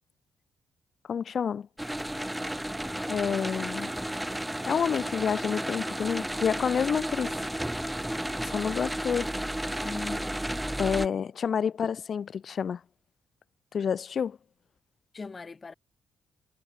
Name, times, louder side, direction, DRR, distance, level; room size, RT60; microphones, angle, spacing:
voice 1, 1.1-1.7 3.1-3.9 4.7-7.3 8.4-9.3 10.8-12.8 13.7-14.4, left 7 dB, 55° left, 2.0 m, -29 dB
sound 1, 1.8-11.1, right 1 dB, 5° right, 4.2 m, -33 dB
voice 2, 9.7-10.4 15.1-15.7, left 4 dB, 35° left, 4.9 m, -40 dB
cardioid pair, 80°, 0 cm